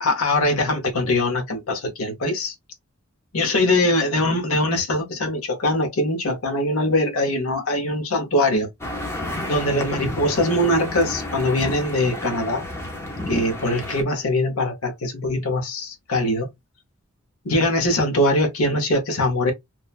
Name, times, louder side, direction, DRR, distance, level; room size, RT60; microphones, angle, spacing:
voice 1, 0.0-2.5 3.3-8.7 9.5-12.7 13.3-16.5 17.4-19.5, left 1 dB, 80° left, 0.8 m, -22 dB
sound 1, 8.8-14.0, left 1 dB, 10° left, 0.6 m, -31 dB
3.0 x 2.1 x 2.3 m
head